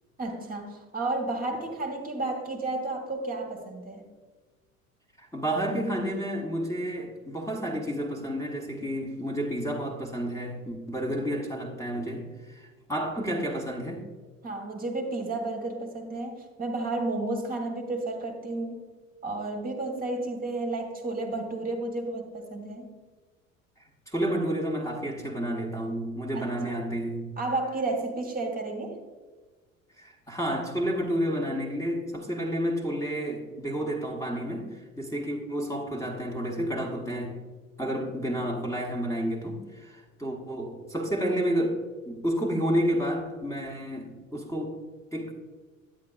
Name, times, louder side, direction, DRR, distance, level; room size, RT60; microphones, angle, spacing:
voice 1, 0.2-4.0 14.4-18.8 19.2-22.9 26.3-26.8 27.4-29.0, right 2 dB, 20° right, 2 dB, 1.2 m, -32 dB
voice 2, 5.2-14.0 24.1-27.3 30.0-37.4 37.8-41.8 42.1-44.7 45.1-45.3, equal, 10° left, 0 dB, 1.1 m, -30 dB
9.6 x 8.8 x 2.4 m, 1.4 s
figure-of-eight pair, 65°, 40 cm